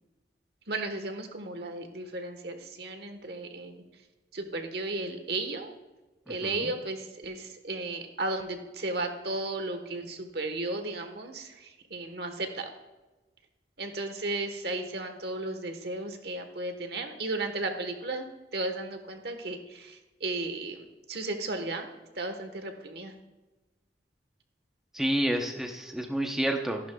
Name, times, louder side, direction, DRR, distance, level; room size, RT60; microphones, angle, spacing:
voice 1, 0.7-3.8 4.3-5.7 6.3-12.7 13.8-21.9 22.1-23.1, right 2 dB, 60° right, 6 dB, 1.2 m, -34 dB
voice 2, 6.3-6.7 24.9-26.8, right 1 dB, ahead, 2 dB, 0.7 m, -29 dB
14.5 x 11.5 x 2.3 m, 1.1 s
head